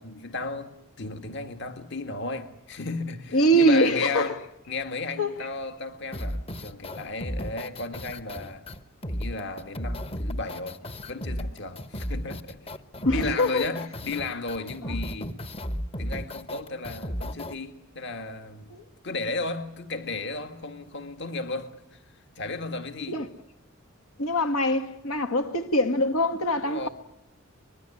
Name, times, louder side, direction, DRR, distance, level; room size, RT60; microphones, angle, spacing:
voice 1, 0.0-4.4 4.7-8.6 9.1-10.8 11.1-12.8 13.1-15.4 16.0-18.7 19.0-22.0 22.4-23.2 26.6-26.9, left 3 dB, 55° left, 1.9 m, -34 dB
voice 2, 3.3-4.3 5.2-5.5 13.1-13.6 18.7-18.8 23.1-23.3 24.2-26.9, equal, 85° left, 2.0 m, -23 dB
sound 1, 6.1-17.6, equal, 25° left, 1.0 m, -34 dB
24.5 x 21.5 x 9.8 m
head